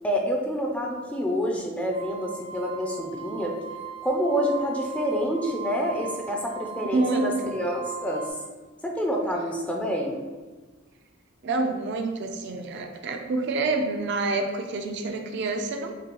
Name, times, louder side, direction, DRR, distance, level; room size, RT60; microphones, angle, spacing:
voice 1, 0.0-3.6 4.0-8.3 8.8-10.2, equal, 5° left, 0 dB, 0.4 m, -27 dB
sound 1, 1.9-8.3, right 6 dB, 80° left, 1.3 m, -39 dB
voice 2, 6.8-7.5 11.4-15.9, right 3 dB, 60° right, 4 dB, 0.4 m, -27 dB
6.4 x 2.3 x 2.9 m, 1.3 s
head